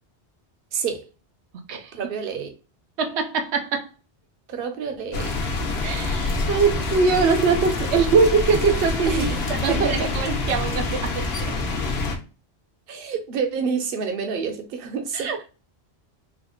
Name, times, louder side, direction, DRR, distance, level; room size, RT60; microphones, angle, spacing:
voice 1, 0.7-1.1 1.9-2.6 4.5-5.4 9.1-9.4 9.7-10.1 12.9-15.3, right 6 dB, 60° right, 0.9 m, -28 dB
voice 2, 1.5-2.0 3.0-3.9 5.8-11.6 15.1-15.5, right 5 dB, 90° right, 0.9 m, -23 dB
sound 1, 5.1-12.2, left 3 dB, 75° left, 1.0 m, -26 dB
3.9 x 2.2 x 3.0 m
omnidirectional pair, 1.1 m